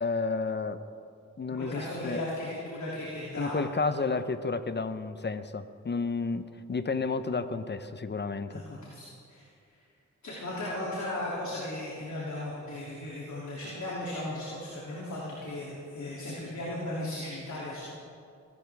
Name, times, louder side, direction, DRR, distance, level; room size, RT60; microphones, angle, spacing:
voice 1, 0.0-0.8 1.4-2.2 3.4-8.6, left 4 dB, 35° left, 12 dB, 0.8 m, -31 dB
voice 2, 1.5-4.2 8.5-9.7 10.2-17.9, left 1 dB, 65° left, -6 dB, 2.9 m, -36 dB
21.5 x 12.5 x 3.5 m, 2.5 s
cardioid pair, 50°, 30 cm